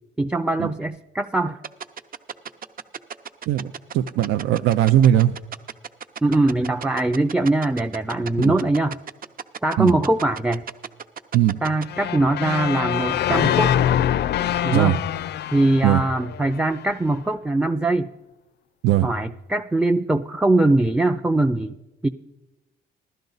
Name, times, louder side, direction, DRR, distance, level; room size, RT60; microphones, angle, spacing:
voice 1, 0.2-1.6 6.2-9.0 9.6-10.6 11.6-13.7 14.6-15.0 15.5-18.1 19.0-21.8 22.0-22.1, right 2 dB, 5° right, 6 dB, 0.4 m, -21 dB
sound 1, 1.6-11.8, right 7 dB, 45° right, 0.7 m, -33 dB
voice 2, 3.5-5.4 8.4-8.5 9.8-9.9 11.3-11.6 14.7-15.0 15.8-16.0 18.8-19.1, right 12 dB, 85° right, 8 dB, 0.5 m, -19 dB
sound 2, 11.9-16.9, left 10 dB, 60° left, 0.4 m, -24 dB
16.0 x 12.0 x 4.0 m, 1.0 s
cardioid pair, 90°, 20 cm